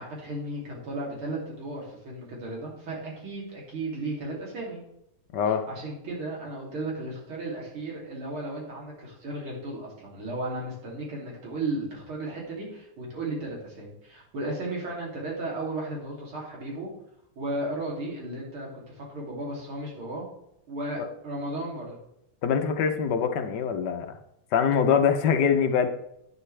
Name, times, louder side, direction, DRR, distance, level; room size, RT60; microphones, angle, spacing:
voice 1, 0.0-4.8 5.7-16.9 17.4-20.2 20.7-22.0, right 2 dB, 70° right, -3 dB, 3.7 m, -35 dB
voice 2, 5.3-5.7 22.4-24.2 24.5-25.9, left 7 dB, 65° left, 6 dB, 1.2 m, -23 dB
11.0 x 9.3 x 3.3 m, 0.78 s
omnidirectional pair, 2.4 m